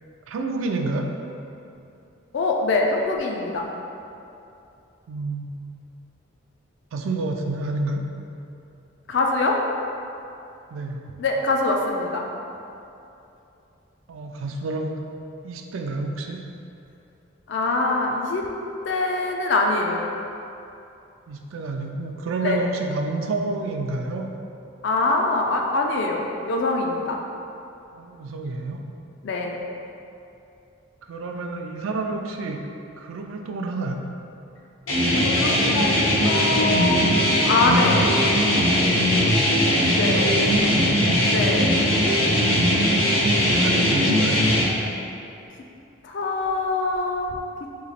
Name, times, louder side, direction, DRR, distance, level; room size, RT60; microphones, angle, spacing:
voice 1, 0.3-1.1 5.1-5.5 6.9-8.1 10.7-11.0 14.1-14.9 15.4-16.5 21.3-24.3 27.9-28.9 31.0-32.6 33.0-34.0 39.2-39.6 40.1-41.0 42.2-42.6 43.1-44.5, right 3 dB, 80° right, 3 dB, 0.3 m, -29 dB
voice 2, 2.3-3.7 9.1-9.6 11.2-12.3 17.5-18.4 18.8-20.1 22.4-22.6 24.8-27.2 29.2-29.6 35.0-36.0 36.2-38.1 39.9-40.5 41.3-41.8 46.0-47.3, left 2 dB, 60° left, 1 dB, 0.3 m, -24 dB
sound 1, 34.9-44.6, equal, 90° left, 0.9 m, -20 dB
3.0 x 2.8 x 4.0 m, 2.8 s
head